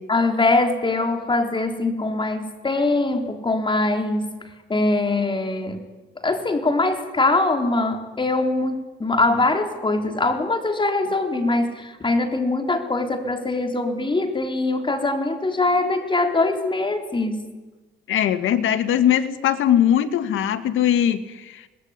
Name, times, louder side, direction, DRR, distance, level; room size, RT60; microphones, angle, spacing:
voice 1, 0.1-5.8 6.2-17.5, left 2 dB, 25° left, 5 dB, 4.3 m, -22 dB
voice 2, 18.1-21.6, left 10 dB, 80° left, 11 dB, 2.0 m, -20 dB
26.5 x 20.5 x 10.0 m, 1.2 s
cardioid pair, 90°, 20 cm